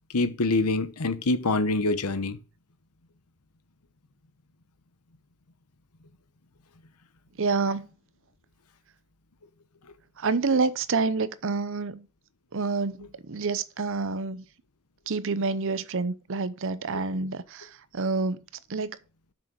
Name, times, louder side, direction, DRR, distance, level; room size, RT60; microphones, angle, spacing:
voice 1, 0.1-2.4, left 2 dB, 90° left, 1.0 m, -25 dB
voice 2, 7.4-7.9 10.2-12.1 12.5-14.4 15.1-18.4 18.7-19.0, right 4 dB, 60° right, 0.7 m, -28 dB
7.4 x 6.4 x 6.1 m
head